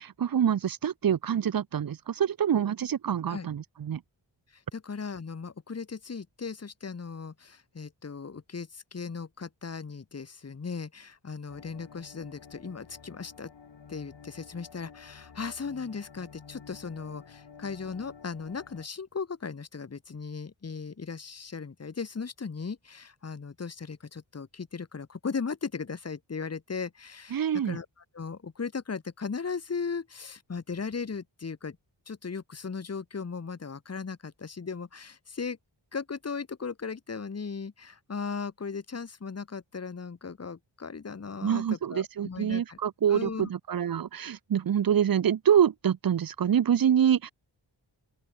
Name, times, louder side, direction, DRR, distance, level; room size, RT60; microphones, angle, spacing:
voice 1, 0.0-4.0 27.3-27.8 41.4-47.3, right 9 dB, 50° right, 0.6 m, -26 dB
voice 2, 4.5-13.5 13.9-27.9 28.1-31.8 32.1-35.6 35.9-42.8 43.1-43.5, left 5 dB, 35° left, 1.0 m, -37 dB
sound 1, 11.5-18.9, left 6 dB, 65° left, 1.8 m, -51 dB
open air
wide cardioid pair, 80°, 45 cm